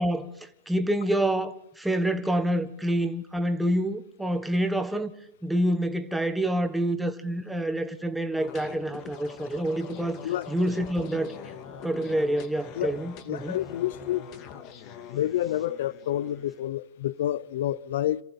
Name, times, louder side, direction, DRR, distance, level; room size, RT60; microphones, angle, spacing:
voice 1, 0.0-5.1 5.4-11.3 11.8-13.6, right 1 dB, 5° right, 1.5 m, -27 dB
sound 1, 8.4-16.7, left 8 dB, 45° left, 2.1 m, -43 dB
voice 2, 13.3-14.2 15.1-18.2, left 12 dB, 70° left, 0.7 m, -28 dB
27.0 x 14.5 x 7.3 m
supercardioid pair, 140°, 0 cm